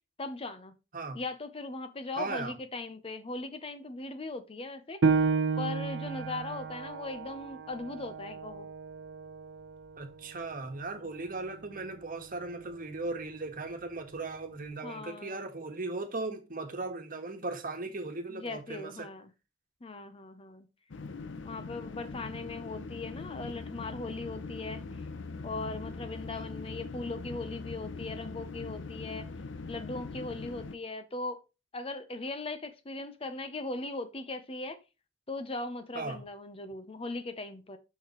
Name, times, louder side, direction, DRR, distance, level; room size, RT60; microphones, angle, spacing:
voice 1, 0.2-0.7 1.1-5.0 5.6-8.7 14.8-15.5 18.3-19.3 19.8-20.7 21.4-25.0 25.4-29.3 29.7-31.4 31.7-34.8 35.3-37.8, left 2 dB, 30° left, 0.8 m, -39 dB
voice 2, 2.2-2.5 10.0-19.1 26.3-26.4 35.9-36.2, right 3 dB, 50° right, 1.4 m, -37 dB
Piano, 5.0-10.2 10.7-10.8 11.4-11.9, right 5 dB, 85° right, 0.7 m, -32 dB
sound 1, 20.9-30.7, left 3 dB, 85° left, 0.6 m, -41 dB
7.0 x 5.9 x 3.1 m
head